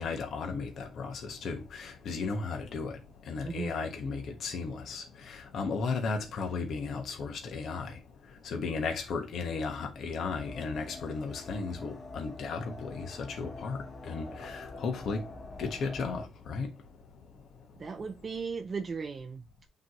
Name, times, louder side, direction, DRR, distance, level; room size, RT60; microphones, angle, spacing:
voice 1, 0.0-17.9, left 4 dB, 65° left, 1.3 m, -35 dB
sound 1, 10.2-16.3, left 2 dB, 40° left, 2.0 m, -45 dB
voice 2, 17.8-19.7, right 5 dB, 40° right, 0.6 m, -37 dB
7.2 x 3.2 x 4.2 m
cardioid pair, 90°, 0 cm